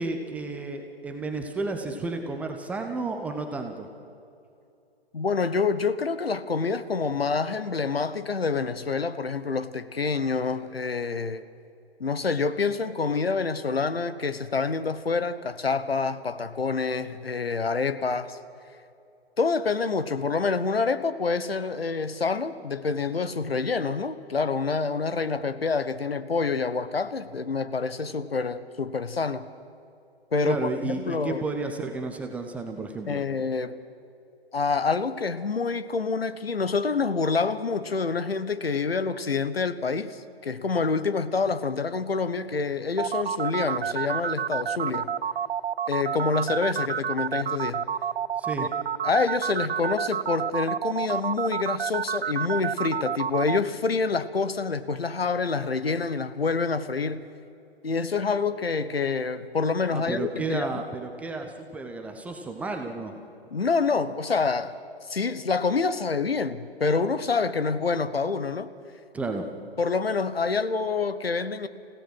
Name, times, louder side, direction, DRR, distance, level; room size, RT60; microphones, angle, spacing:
voice 1, 0.0-3.9 30.5-33.2 48.4-48.7 59.9-63.2 69.1-69.5, right 3 dB, 5° right, 4 dB, 0.7 m, -32 dB
voice 2, 5.1-11.4 12.0-18.4 19.4-29.5 30.3-31.4 33.1-33.8 34.5-45.1 45.9-47.8 49.0-57.2 57.8-60.7 63.5-64.8 65.0-68.7 69.8-71.7, left 4 dB, 70° left, 13 dB, 1.2 m, -27 dB
sound 1, 43.0-53.6, right 8 dB, 70° right, 0.5 m, -29 dB
28.5 x 16.5 x 6.3 m, 2.6 s
figure-of-eight pair, 130°, 31 cm